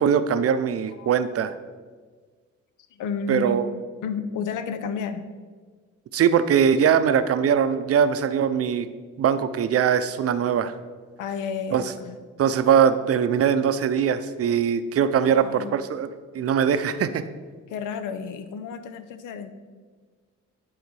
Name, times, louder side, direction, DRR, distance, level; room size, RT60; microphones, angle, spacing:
voice 1, 0.0-1.5 3.3-3.7 6.1-8.9 9.2-10.7 11.7-11.9 12.4-16.1 16.3-17.3, right 8 dB, 50° right, 11 dB, 0.5 m, -21 dB
voice 2, 2.9-3.6 4.0-5.2 11.2-12.2 15.2-15.8 17.7-19.5, left 5 dB, 85° left, 11 dB, 0.7 m, -31 dB
11.0 x 3.9 x 4.7 m, 1.5 s
cardioid pair, 90°, 30 cm